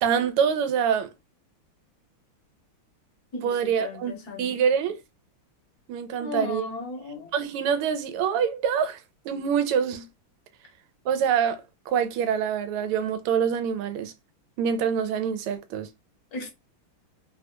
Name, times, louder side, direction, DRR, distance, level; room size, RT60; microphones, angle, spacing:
voice 1, 0.0-1.1 3.4-4.1 4.4-5.0 5.9-6.7 7.3-9.0 9.2-10.1 11.0-14.1 14.6-15.9, right 7 dB, 90° right, 1.5 m, -25 dB
voice 2, 3.3-4.5 6.2-7.3 16.3-16.5, left 3 dB, 55° left, 1.3 m, -36 dB
3.7 x 2.1 x 2.9 m
omnidirectional pair, 2.4 m